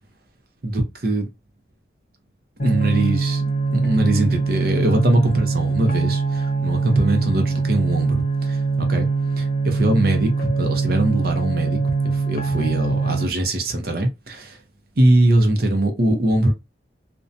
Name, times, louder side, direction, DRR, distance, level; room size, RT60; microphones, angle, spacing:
voice 1, 0.6-1.3 2.6-9.1 9.4-14.6 15.0-16.5, right 1 dB, 50° right, 0.6 m, -22 dB
sound 1, 2.6-13.2, right 4 dB, 50° left, 0.7 m, -22 dB
2.6 x 2.2 x 2.6 m
head